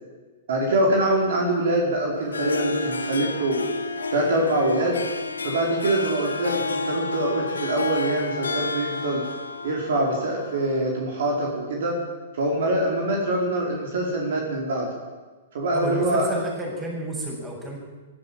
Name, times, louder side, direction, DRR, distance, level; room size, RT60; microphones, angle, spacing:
voice 1, 0.5-3.5 4.1-5.0 5.4-9.2 9.6-12.0 12.3-14.9 15.5-16.3, right 1 dB, 60° right, 0 dB, 4.8 m, -24 dB
Harp, 2.2-10.9, left 3 dB, 75° left, 2.2 m, -30 dB
voice 2, 15.7-17.8, right 1 dB, 20° right, -1 dB, 7.8 m, -31 dB
24.0 x 13.0 x 9.1 m, 1.3 s
figure-of-eight pair, 110°, 0 cm